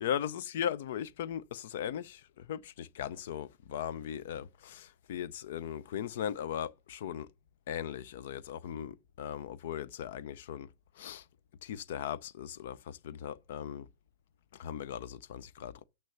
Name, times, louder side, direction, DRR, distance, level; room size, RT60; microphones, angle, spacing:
voice 1, 0.0-2.2 2.5-7.3 7.7-10.7 11.0-11.2 11.6-13.9 14.6-15.8, left 9 dB, 60° left, 0.6 m, -38 dB
6.3 x 5.9 x 6.5 m
hypercardioid pair, 115°, 0 cm